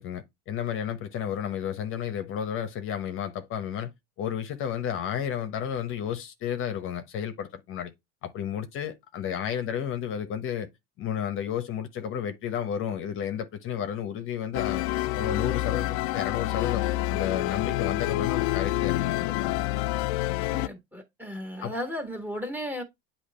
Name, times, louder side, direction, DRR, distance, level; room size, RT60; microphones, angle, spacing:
voice 1, 0.0-3.9 4.2-7.9 8.2-10.7 11.0-14.8 15.1-16.8 17.1-19.6 21.6-21.7, left 9 dB, 40° left, 0.9 m, -32 dB
sound 1, 14.5-20.7, left 16 dB, 75° left, 0.5 m, -28 dB
voice 2, 20.5-22.8, equal, 5° right, 1.7 m, -35 dB
8.5 x 2.9 x 4.2 m
cardioid pair, 160°, 33 cm